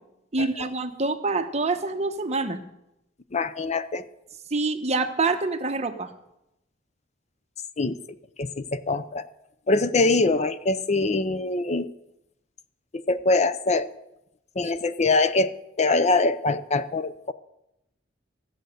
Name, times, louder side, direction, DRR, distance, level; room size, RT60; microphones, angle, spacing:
voice 1, 0.3-2.6 4.5-6.1 14.6-14.7, right 3 dB, 35° right, 7 dB, 1.0 m, -26 dB
voice 2, 3.3-4.0 7.8-8.0 8.4-9.3 9.7-11.9 12.9-13.9 14.6-17.3, left 3 dB, 40° left, 13 dB, 0.5 m, -23 dB
15.0 x 7.8 x 6.5 m, 0.86 s
head